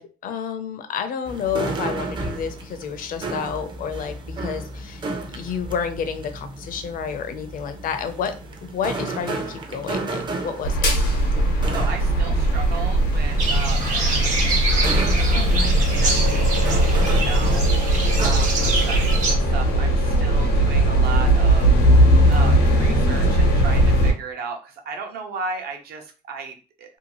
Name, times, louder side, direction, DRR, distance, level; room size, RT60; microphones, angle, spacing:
voice 1, 0.0-5.0 5.3-8.3 8.6-10.9 15.3-15.8, left 7 dB, 55° left, 8 dB, 0.5 m, -30 dB
sound 1, 1.3-19.1, right 3 dB, 30° right, 0.5 m, -33 dB
sound 2, 10.6-24.1, right 1 dB, 90° left, 0.9 m, -19 dB
voice 2, 11.7-27.0, right 5 dB, 70° right, 4 dB, 0.8 m, -35 dB
sound 3, 13.4-19.3, right 2 dB, 50° right, 0.9 m, -26 dB
2.7 x 2.3 x 2.9 m, 0.35 s
cardioid pair, 110°, 17 cm